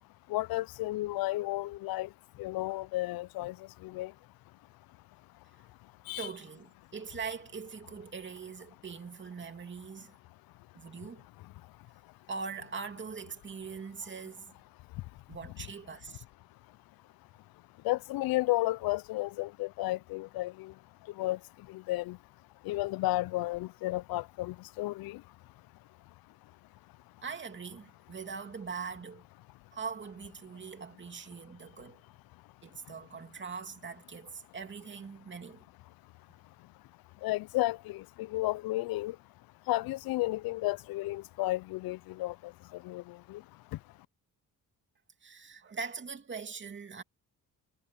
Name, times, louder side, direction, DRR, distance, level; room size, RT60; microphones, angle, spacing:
voice 1, 0.3-2.1 2.4-3.5 3.8-4.1 6.1-6.3 17.8-20.7 21.2-21.4 21.7-22.2 22.7-25.2 37.2-39.2 39.7-42.3 42.9-43.0 43.3-43.4, left 18 dB, 80° left, 0.5 m, -32 dB
voice 2, 6.2-10.1 10.7-11.2 12.3-14.5 15.3-16.2 27.2-29.2 29.7-32.0 32.6-35.6 45.2-47.0, right 5 dB, 30° right, 2.7 m, -42 dB
cardioid pair, 135°, 35 cm